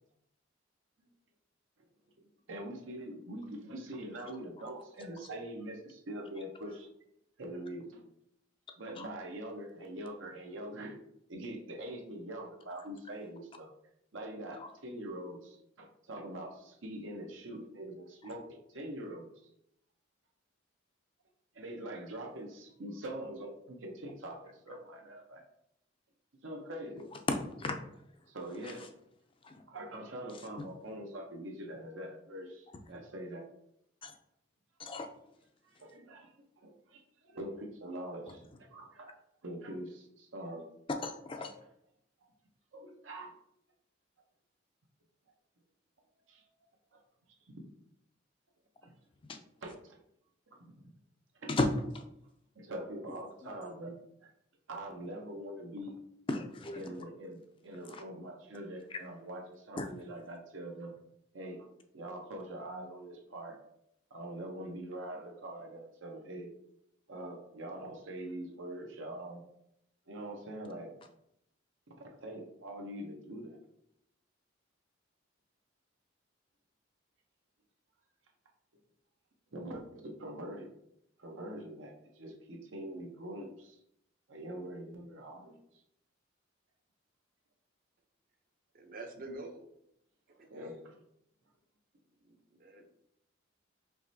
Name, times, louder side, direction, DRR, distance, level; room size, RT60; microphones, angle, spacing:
voice 1, 2.5-6.9 7.4-8.0 8.8-11.0 11.3-13.7 14.1-19.5 21.5-25.4 26.4-27.1 28.3-28.9 29.7-33.4 35.8-39.2 39.4-40.6 42.2-42.3 42.7-43.3 46.3-46.4 46.9-47.0 47.5-47.6 48.8-48.9 49.6-50.0 50.6-50.9 51.4-51.5 52.6-54.3 54.7-55.9 56.7-60.9 61.3-61.7 61.9-63.6 64.1-66.5 67.1-69.4 70.1-70.9 72.2-73.6 79.5-80.7 81.2-83.8 84.3-85.8 90.3-91.0, right 1 dB, 80° right, 1 dB, 0.8 m, -44 dB
voice 2, 27.3-27.7 29.4-29.5 34.0-34.1 34.8-35.1 41.0-41.5 49.3-49.4 51.5-51.7 51.9-52.0 56.3-56.8 57.9-58.0 58.9-59.0 59.8-59.9, left 2 dB, 25° left, 6 dB, 0.4 m, -34 dB
voice 3, 88.7-89.7 90.4-90.8 92.2-92.9, right 2 dB, 45° right, 4 dB, 0.6 m, -47 dB
4.8 x 3.1 x 2.7 m, 0.76 s
head